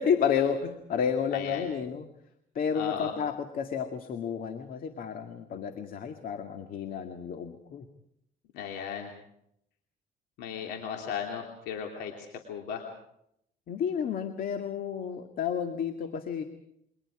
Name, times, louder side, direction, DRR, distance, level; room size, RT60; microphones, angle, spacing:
voice 1, 0.0-2.1 2.6-7.9 13.7-16.4, left 7 dB, 60° left, 7 dB, 2.1 m, -31 dB
voice 2, 1.3-1.7 2.7-3.1 8.5-9.1 10.4-12.8, left 8 dB, 85° left, 3 dB, 3.1 m, -36 dB
28.5 x 24.0 x 4.9 m, 0.74 s
cardioid pair, 110°, 17 cm